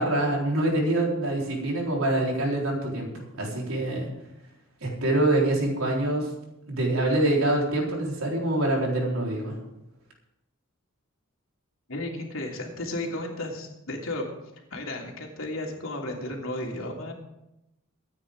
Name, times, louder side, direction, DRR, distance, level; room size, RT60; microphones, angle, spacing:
voice 1, 0.0-4.1 4.8-6.3 6.7-9.6, right 1 dB, 85° right, -2 dB, 4.3 m, -25 dB
voice 2, 11.9-14.2 14.7-17.1, left 1 dB, 75° left, 0 dB, 3.1 m, -33 dB
23.5 x 9.5 x 3.8 m, 0.90 s
head